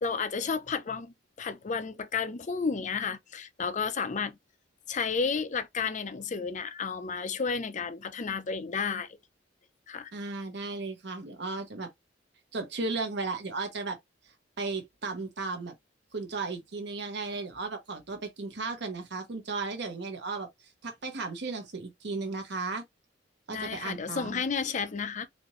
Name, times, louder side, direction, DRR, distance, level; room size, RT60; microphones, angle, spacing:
voice 1, 0.0-4.4 4.9-9.1 9.9-10.1 23.5-25.3, left 5 dB, 40° left, 0.5 m, -32 dB
voice 2, 10.1-11.9 12.5-14.0 14.6-15.7 16.1-22.8 23.5-24.4, right 3 dB, 65° right, 1.0 m, -35 dB
4.2 x 2.6 x 3.0 m
head